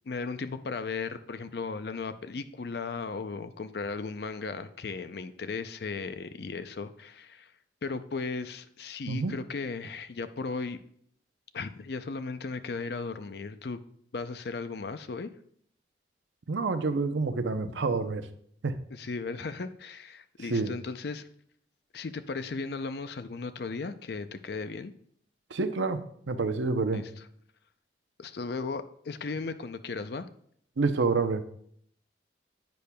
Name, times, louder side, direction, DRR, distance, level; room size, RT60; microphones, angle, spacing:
voice 1, 0.1-7.5 7.8-10.8 11.5-13.8 14.1-15.3 18.9-21.3 21.9-24.9 26.9-27.1 28.2-30.3, left 4 dB, 60° left, 0.5 m, -36 dB
voice 2, 16.5-18.3 18.6-18.7 20.5-20.7 25.5-26.0 26.3-27.1 30.8-31.4, right 3 dB, 80° right, 0.6 m, -28 dB
10.5 x 8.4 x 2.2 m
head